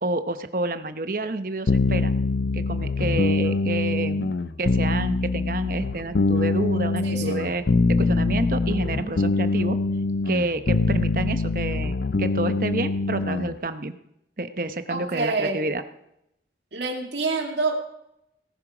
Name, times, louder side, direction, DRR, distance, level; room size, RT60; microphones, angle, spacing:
voice 1, 0.0-2.1 2.5-7.6 7.9-9.8 10.3-14.0 14.4-15.8, right 2 dB, 50° right, 10 dB, 0.9 m, -29 dB
sound 1, 1.7-13.5, left 3 dB, 80° left, 0.6 m, -24 dB
voice 2, 7.0-7.4 14.9-15.7 16.7-17.7, right 3 dB, 85° right, 3 dB, 2.5 m, -27 dB
18.5 x 11.0 x 5.0 m, 0.81 s
head